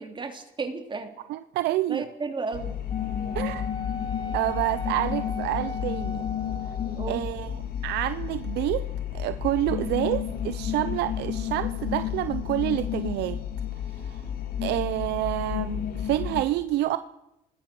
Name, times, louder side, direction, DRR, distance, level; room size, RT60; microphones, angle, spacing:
voice 1, 0.0-1.2 1.9-2.8 6.9-7.3, right 4 dB, 30° right, 6 dB, 2.9 m, -33 dB
voice 2, 1.3-2.1 3.3-3.7 4.3-6.2 7.1-7.6 7.8-8.9 9.1-13.4 14.0-14.2 14.6-17.0, right 15 dB, 80° right, 12 dB, 0.7 m, -28 dB
sound 1, 2.5-16.4, left 9 dB, 65° left, 2.6 m, -31 dB
Wind instrument woodwind instrument, 2.9-7.1, left 2 dB, 25° left, 2.1 m, -38 dB
27.5 x 20.0 x 6.0 m, 0.88 s
cardioid pair, 110°, 17 cm